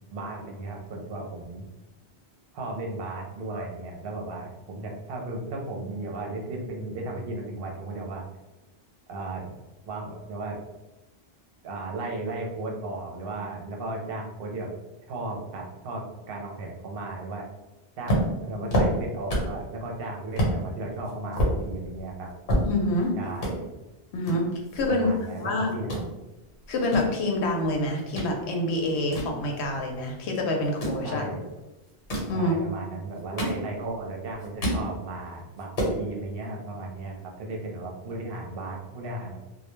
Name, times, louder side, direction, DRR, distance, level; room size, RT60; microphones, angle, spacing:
voice 1, 0.1-1.7 2.5-8.2 9.1-9.5 9.8-10.6 11.6-14.7 15.1-17.5 18.0-22.3 23.2-23.7 24.9-26.0 31.0-31.5 32.3-39.4, right 2 dB, 70° right, 0 dB, 0.7 m, -35 dB
sound 1, 18.1-19.6 20.0-20.1 20.4-20.6 21.0-23.0 23.3-23.5 24.2-25.4 25.7-26.1 26.6-28.3 28.7-30.0 30.6-31.0 31.9-32.4 33.0-34.0 34.3-34.9 35.3-35.4 35.6-36.0, equal, 60° left, 1.0 m, -28 dB
voice 2, 22.6-23.1 24.1-25.1 25.4-25.7 26.7-31.2 32.3-32.5, left 1 dB, 90° left, 1 dB, 0.9 m, -27 dB
2.2 x 2.1 x 3.0 m, 1.0 s
omnidirectional pair, 1.1 m